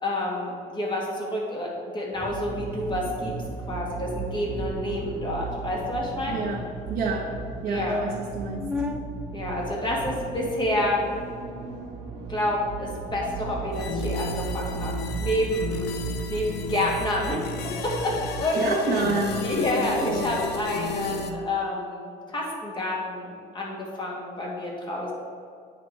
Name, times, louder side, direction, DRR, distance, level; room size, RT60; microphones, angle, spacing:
voice 1, 0.0-3.3 3.7-6.4 7.7-8.1 9.3-11.1 12.3-15.9 16.3-19.0 19.4-25.1, left 1 dB, 30° left, -3 dB, 2.1 m, -29 dB
sound 1, 2.1-3.0 3.2-3.4 3.7-3.9 4.2-4.3 4.5-4.7 5.3-6.4 7.1-7.2 7.5-7.6 7.8-9.0 9.9-10.9, left 3 dB, 5° right, 0.6 m, -37 dB
sound 2, 2.2-18.4, right 4 dB, 85° right, 1.4 m, -35 dB
voice 2, 6.3-6.6 6.9-7.3 7.6-8.6 18.6-20.5, right 4 dB, 55° right, -5 dB, 1.5 m, -29 dB
sound 3, 13.7-21.3, left 4 dB, 70° left, 0.7 m, -33 dB
8.6 x 5.0 x 4.7 m, 2.2 s
cardioid pair, 110°, 17 cm